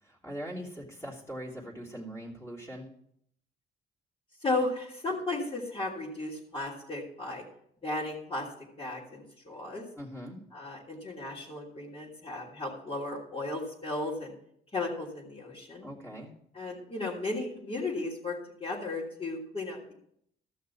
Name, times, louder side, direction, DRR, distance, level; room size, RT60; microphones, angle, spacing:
voice 1, 0.0-2.9 10.0-10.4 15.8-16.3, equal, 15° left, -3 dB, 3.1 m, -41 dB
voice 2, 4.4-7.4 7.8-9.8 10.5-14.3 14.7-15.9 16.5-19.9, left 2 dB, 30° left, -7 dB, 3.1 m, -35 dB
14.0 x 6.5 x 5.8 m, 0.70 s
cardioid pair, 90°, 20 cm